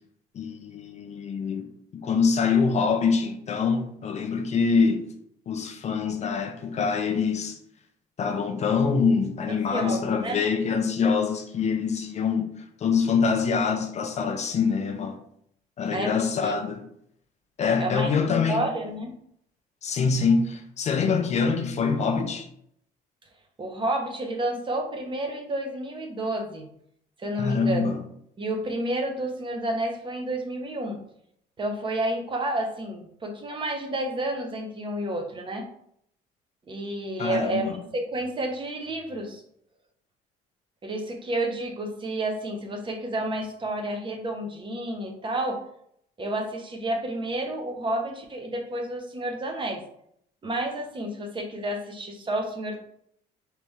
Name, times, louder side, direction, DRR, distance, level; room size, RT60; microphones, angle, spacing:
voice 1, 0.3-1.7 1.9-5.1 5.5-7.6 8.2-15.2 15.8-16.8 17.6-18.7 19.8-22.5 27.4-28.0 37.2-37.8, left 5 dB, 40° left, 0.5 m, -25 dB
voice 2, 9.5-10.4 15.9-16.5 17.8-18.1 18.5-19.1 23.6-26.7 27.2-28.0 28.4-31.0 31.6-35.7 36.7-39.4 40.8-45.6 46.2-49.8 50.4-52.8, right 1 dB, 30° right, 0.8 m, -30 dB
3.3 x 3.3 x 3.2 m
cardioid pair, 110°, 17 cm